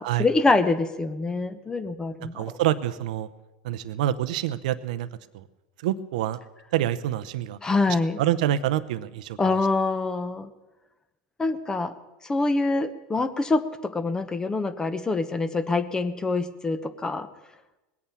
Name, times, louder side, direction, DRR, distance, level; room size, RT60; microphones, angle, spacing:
voice 1, 0.0-2.6 7.6-8.2 9.4-10.5 11.4-11.9 12.2-17.3, left 3 dB, 15° left, 12 dB, 1.0 m, -25 dB
voice 2, 2.3-3.3 3.6-5.1 5.3-5.4 5.8-6.4 6.7-7.6 8.2-9.4, right 12 dB, 75° right, 14 dB, 0.8 m, -26 dB
20.0 x 8.6 x 7.1 m, 1.1 s
hypercardioid pair, 105°, 4 cm